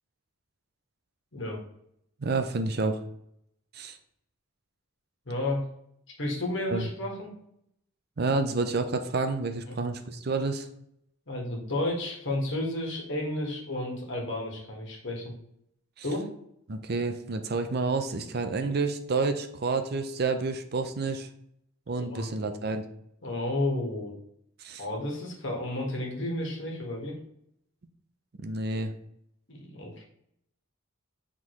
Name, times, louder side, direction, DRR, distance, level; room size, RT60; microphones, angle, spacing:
voice 1, 2.2-3.0 3.7-4.0 6.7-6.9 8.2-10.7 16.7-21.3 21.9-22.8 24.6-24.8 28.4-28.9, right 3 dB, 50° right, 7 dB, 0.6 m, -29 dB
voice 2, 5.3-5.6 6.2-7.4 9.7-9.8 11.3-15.3 16.0-16.3 22.0-22.3 23.2-24.1 24.8-27.2 29.5-30.0, left 1 dB, 60° left, 0 dB, 1.7 m, -32 dB
8.4 x 3.7 x 3.1 m, 0.73 s
head